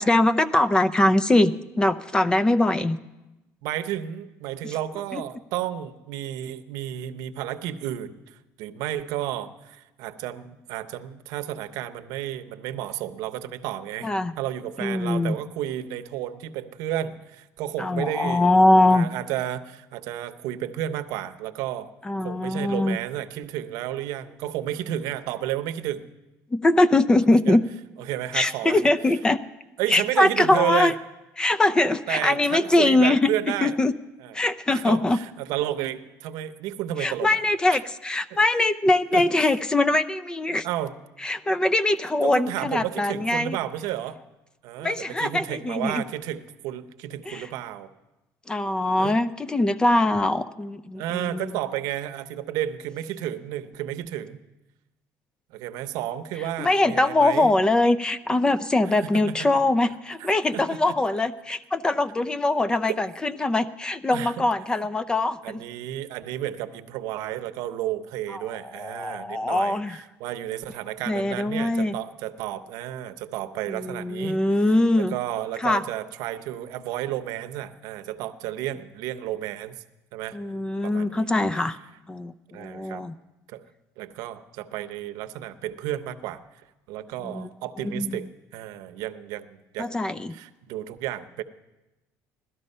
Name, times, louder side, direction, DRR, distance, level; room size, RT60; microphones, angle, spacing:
voice 1, 0.0-3.0 5.1-5.2 14.0-14.3 14.8-15.4 17.8-19.1 22.1-23.0 26.5-27.6 28.3-29.4 29.9-30.9 31.4-33.3 33.6-33.9 34.3-35.2 37.0-40.7 41.2-43.6 44.8-46.0 47.3-47.5 48.5-51.6 56.6-65.6 68.3-68.4 68.8-70.0 71.1-71.9 73.7-75.1 75.6-75.8 80.3-81.8 82.1-83.1 87.2-87.5 87.8-88.1 89.8-90.3, left 2 dB, 15° left, 13 dB, 0.4 m, -22 dB
voice 2, 3.6-14.1 14.4-18.5 18.9-21.9 22.2-26.1 27.5-27.6 28.0-28.8 29.8-30.9 32.1-33.8 34.2-34.4 34.7-37.4 37.7-37.8 39.1-39.2 40.6-41.0 42.2-44.2 44.6-47.9 49.0-49.1 51.0-54.4 55.5-57.6 59.0-59.6 60.2-60.3 60.5-60.9 64.1-64.4 65.4-74.4 74.9-79.7 80.1-80.4 80.8-81.3 82.5-83.0 83.5-83.6 84.0-88.3 88.5-91.4, right 12 dB, 80° right, 10 dB, 0.8 m, -32 dB
17.0 x 12.5 x 5.4 m, 1.0 s
cardioid pair, 145°, 6 cm